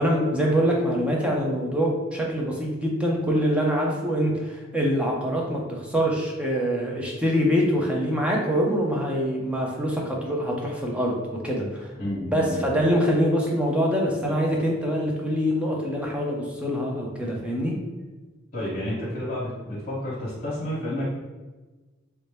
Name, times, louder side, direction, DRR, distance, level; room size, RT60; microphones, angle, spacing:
voice 1, 0.0-11.9 12.3-17.7, equal, 5° right, -2 dB, 0.6 m, -24 dB
voice 2, 12.0-12.8 18.5-21.0, left 1 dB, 45° left, -8 dB, 1.1 m, -30 dB
3.3 x 2.7 x 3.4 m, 1.2 s
head